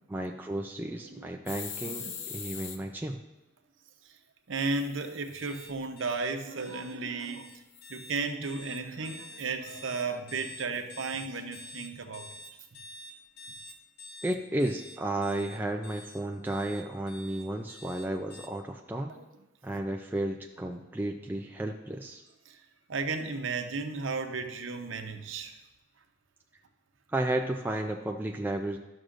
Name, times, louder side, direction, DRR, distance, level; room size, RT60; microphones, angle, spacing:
voice 1, 0.1-3.2 14.2-19.2 19.6-22.2 27.1-28.8, right 1 dB, 10° right, 2 dB, 0.3 m, -33 dB
sound 1, 1.5-2.8 4.6-5.6 7.7-8.2, left 7 dB, 80° left, 0.7 m, -42 dB
voice 2, 4.5-7.6 7.9-12.3 19.1-19.2 19.7-19.8 22.5-22.6 22.9-25.6, right 4 dB, 85° right, 6 dB, 0.8 m, -34 dB
sound 2, 5.3-18.5, left 1 dB, 55° left, 1.1 m, -48 dB
12.5 x 6.2 x 2.5 m, 1.1 s
head